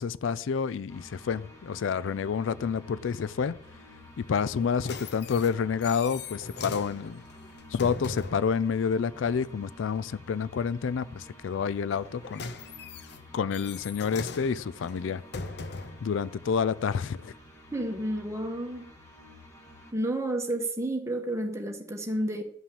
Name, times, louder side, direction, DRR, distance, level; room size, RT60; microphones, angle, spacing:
voice 1, 0.0-3.6 4.2-7.2 7.7-12.5 13.3-15.2 16.0-17.3, left 6 dB, 75° left, 0.4 m, -29 dB
sound 1, 0.9-19.9, left 1 dB, 15° left, 2.7 m, -51 dB
sound 2, 4.5-8.5 11.9-16.1 16.8-16.9, left 4 dB, 60° left, 0.8 m, -40 dB
voice 2, 17.7-18.9 19.9-22.4, right 1 dB, 15° right, 1.5 m, -31 dB
11.5 x 5.8 x 7.1 m
head